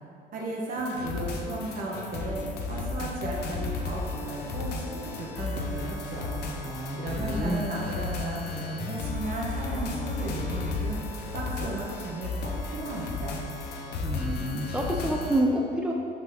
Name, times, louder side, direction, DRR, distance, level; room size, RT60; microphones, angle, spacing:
voice 1, 0.3-2.4 2.7-6.6 7.0-13.4, right 2 dB, 55° right, -3 dB, 1.5 m, -35 dB
sound 1, 0.8-15.4, left 3 dB, 80° left, 0.8 m, -34 dB
voice 2, 6.6-7.7 14.0-15.9, right 1 dB, 5° right, -1 dB, 0.5 m, -28 dB
5.9 x 5.3 x 3.9 m, 2.4 s
cardioid pair, 110°, 17 cm